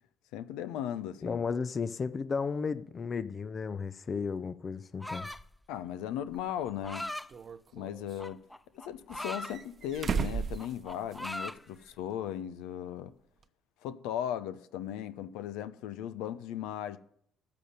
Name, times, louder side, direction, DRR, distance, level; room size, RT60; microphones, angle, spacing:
voice 1, 0.3-1.4 5.7-7.1 7.7-8.4 8.7-13.1 13.8-17.0, left 10 dB, 75° left, 0.9 m, -37 dB
voice 2, 1.2-5.3, left 5 dB, 40° left, 0.8 m, -34 dB
sound 1, 5.0-5.5 6.6-7.3 8.2-9.5 10.0-10.3 10.5-11.6, left 1 dB, 5° left, 0.9 m, -39 dB
sound 2, 6.3-6.4 7.3-8.2 9.1-11.4 11.7-11.8 13.4-13.5, right 6 dB, 45° right, 0.9 m, -36 dB
13.5 x 7.0 x 9.7 m
hypercardioid pair, 55°, 0 cm